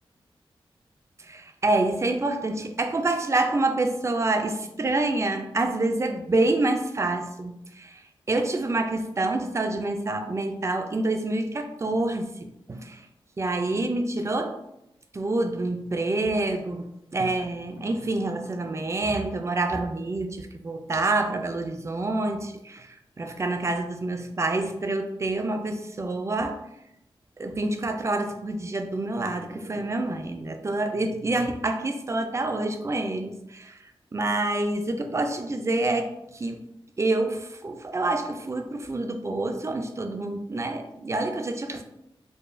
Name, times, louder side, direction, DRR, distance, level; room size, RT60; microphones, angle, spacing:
voice 1, 1.2-8.0 8.3-13.0 13.4-14.6 15.1-16.9 17.1-26.6 27.4-33.8 34.1-36.6 37.0-41.8, right 2 dB, 30° right, 6 dB, 0.4 m, -27 dB
4.7 x 2.2 x 2.5 m, 0.83 s
wide cardioid pair, 90°, 10 cm